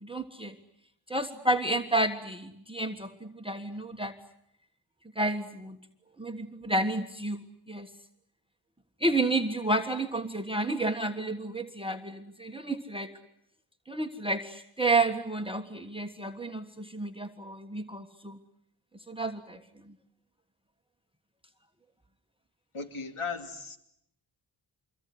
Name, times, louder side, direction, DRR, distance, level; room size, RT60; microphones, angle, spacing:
voice 1, 0.0-0.5 1.1-4.1 5.2-5.8 6.2-7.9 9.0-13.1 13.9-18.4 19.1-19.6, right 2 dB, 10° right, 8 dB, 1.5 m, -30 dB
voice 2, 22.7-23.8, left 4 dB, 80° left, 6 dB, 2.8 m, -36 dB
26.0 x 23.5 x 9.5 m, 0.77 s
cardioid pair, 50°, 50 cm